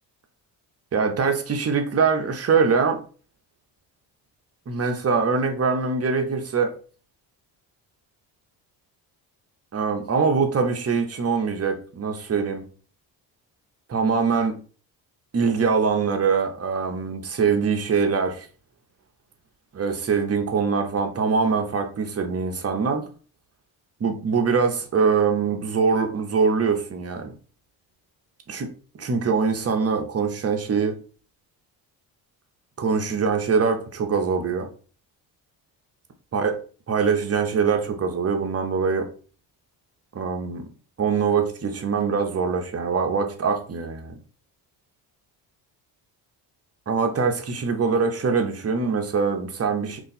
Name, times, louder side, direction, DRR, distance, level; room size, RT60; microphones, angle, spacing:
voice 1, 0.9-3.0 4.7-6.7 9.7-12.6 13.9-14.5 15.3-18.5 19.7-23.0 24.0-27.4 28.5-28.7 29.0-30.9 32.8-34.7 36.3-36.6 36.9-39.1 40.1-40.7 41.0-44.1 46.9-50.0, right 5 dB, 35° right, 5 dB, 0.8 m, -23 dB
2.6 x 2.4 x 4.0 m, 0.39 s
supercardioid pair, 75°, 45 cm